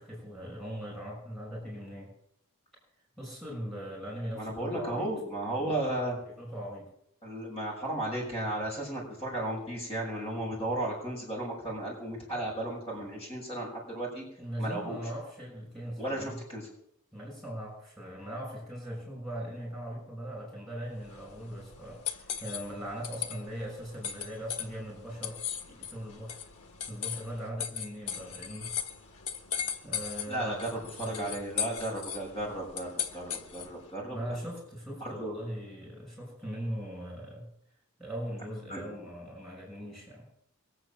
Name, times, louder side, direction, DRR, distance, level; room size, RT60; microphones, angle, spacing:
voice 1, 0.0-2.1 3.2-5.1 5.5-5.7 6.2-6.9 14.4-16.4 17.1-25.4 25.7-26.4 26.9-28.7 29.8-31.4 34.1-37.5 38.0-40.3, equal, ahead, -4 dB, 6.5 m, -40 dB
voice 2, 4.4-6.2 7.2-14.2 14.6-15.0 16.0-16.7 30.3-32.9 33.1-34.2 35.0-35.3 38.7-38.8, right 1 dB, 25° left, -2 dB, 6.6 m, -34 dB
sound 1, 21.0-33.8, left 8 dB, 90° left, 1.6 m, -38 dB
23.0 x 8.1 x 7.5 m, 0.73 s
head